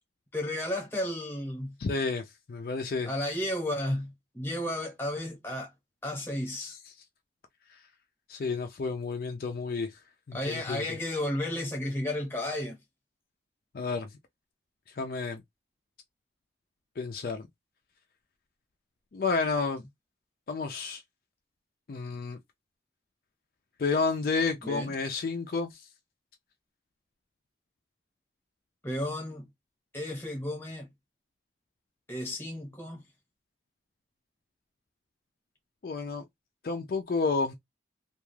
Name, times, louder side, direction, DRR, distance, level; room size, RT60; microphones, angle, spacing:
voice 1, 0.3-1.7 3.0-5.7 6.0-6.8 10.3-12.8 24.6-24.9 28.8-29.5 29.9-30.9 32.1-33.0, left 1 dB, 15° left, 0.9 m, -33 dB
voice 2, 1.8-3.1 6.6-6.8 8.3-10.0 10.3-10.8 13.7-14.1 15.0-15.4 17.0-17.5 19.1-19.8 20.5-21.0 21.9-22.4 23.8-25.8 35.8-36.2 36.6-37.5, left 4 dB, 50° left, 0.4 m, -30 dB
2.4 x 2.3 x 3.1 m
head